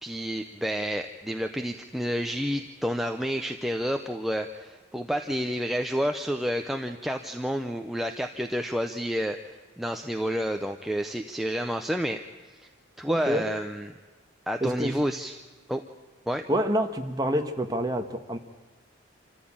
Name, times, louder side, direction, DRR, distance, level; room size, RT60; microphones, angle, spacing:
voice 1, 0.0-12.2 12.5-12.7 13.0-13.9 14.5-15.4 15.7-15.8 16.3-16.4, equal, ahead, 5 dB, 0.7 m, -30 dB
voice 2, 13.1-13.4 14.6-15.0 16.5-18.4, equal, 20° right, 5 dB, 1.4 m, -27 dB
26.5 x 14.5 x 8.7 m, 1.4 s
head